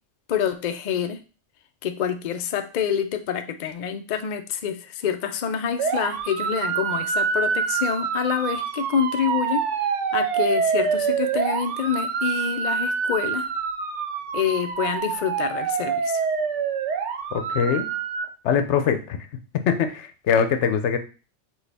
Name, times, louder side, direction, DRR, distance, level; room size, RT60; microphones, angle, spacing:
voice 1, 0.3-1.2 1.8-13.5 14.3-16.3, left 8 dB, 55° left, 7 dB, 0.5 m, -27 dB
sound 1, 5.8-18.2, right 6 dB, 85° right, 1.0 m, -26 dB
voice 2, 17.3-17.9 18.4-19.2 19.5-21.0, left 7 dB, 80° left, 7 dB, 0.9 m, -22 dB
6.0 x 2.3 x 3.4 m, 0.35 s
omnidirectional pair, 1.2 m